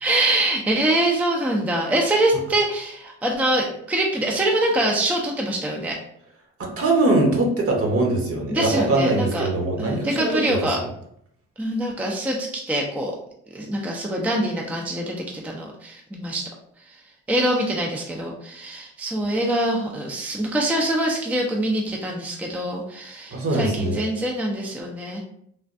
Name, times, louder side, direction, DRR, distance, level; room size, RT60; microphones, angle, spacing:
voice 1, 0.0-6.0 8.5-9.5 9.8-10.8 11.6-13.1 13.5-16.5 16.9-17.0 17.3-25.2, right 1 dB, 5° right, 0 dB, 0.4 m, -24 dB
voice 2, 6.6-10.6 23.3-23.9, right 2 dB, 50° right, 1 dB, 0.9 m, -22 dB
3.3 x 2.2 x 2.5 m, 0.71 s
cardioid pair, 90°, 30 cm